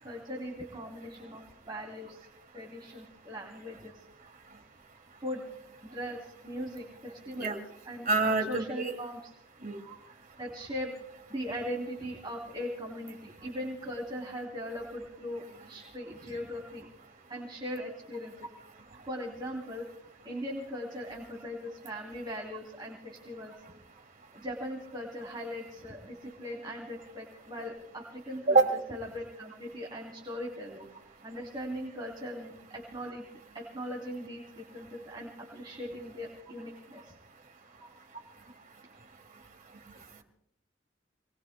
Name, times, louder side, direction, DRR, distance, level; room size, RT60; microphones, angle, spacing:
voice 1, 0.0-2.3 2.5-4.0 5.2-5.4 5.9-7.6 7.8-8.1 8.5-9.3 10.1-10.9 11.3-16.9 17.3-18.5 19.1-19.9 20.2-23.5 24.3-28.6 28.9-30.9 31.2-33.3 33.5-37.1, equal, 25° right, -1 dB, 3.1 m, -39 dB
voice 2, 8.1-8.9 9.6-9.9 28.5-28.7, right 3 dB, 50° right, 3 dB, 2.5 m, -26 dB
28.5 x 21.0 x 2.2 m, 0.72 s
head